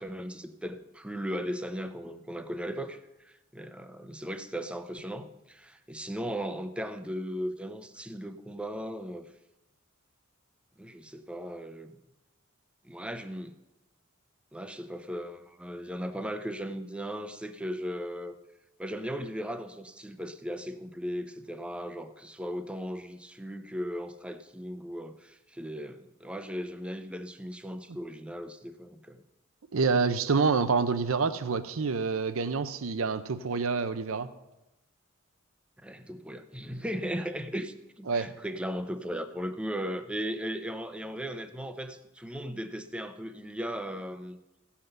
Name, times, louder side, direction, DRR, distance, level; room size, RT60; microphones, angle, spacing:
voice 1, 0.0-9.3 10.8-11.9 12.8-13.6 14.5-18.4 18.8-29.2 35.8-44.4, equal, 5° right, 9 dB, 0.6 m, -37 dB
voice 2, 29.7-34.3 38.1-38.3, right 4 dB, 70° right, 12 dB, 0.6 m, -27 dB
15.5 x 5.8 x 6.6 m, 0.97 s
head